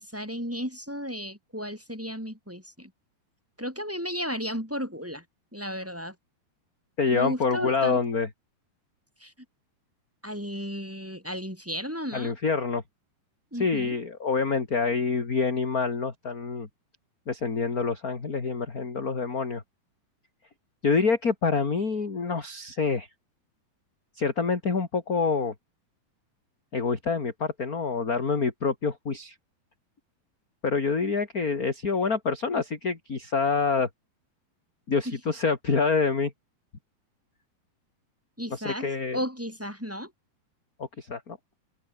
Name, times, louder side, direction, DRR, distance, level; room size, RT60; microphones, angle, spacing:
voice 1, 0.0-2.9 3.6-5.2 5.5-6.1 7.1-8.0 9.2-9.3 10.2-12.3 13.5-14.0 35.0-35.2 38.4-40.1, equal, 5° right, 6.1 m, -34 dB
voice 2, 7.0-8.3 12.1-12.8 13.6-16.7 17.3-19.6 20.8-23.1 24.2-25.5 26.7-29.3 30.6-33.9 34.9-36.3 38.5-39.2 40.8-41.4, left 4 dB, 25° left, 2.6 m, -26 dB
omnidirectional pair, 4.4 m